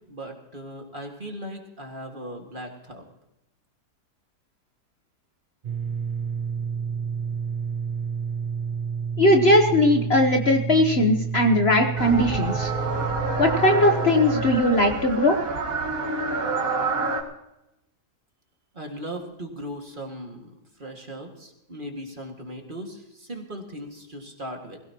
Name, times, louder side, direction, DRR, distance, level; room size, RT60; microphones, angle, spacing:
voice 1, 0.1-3.0 18.7-24.8, equal, 30° right, 2 dB, 2.1 m, -38 dB
sound 1, 5.6-14.6, right 6 dB, 85° right, 0.4 m, -30 dB
voice 2, 9.2-12.7 13.4-15.4, left 1 dB, 45° left, 4 dB, 1.2 m, -19 dB
sound 2, 12.0-17.2, right 3 dB, 55° right, 2.6 m, -28 dB
21.5 x 16.5 x 2.9 m, 0.87 s
omnidirectional pair, 1.7 m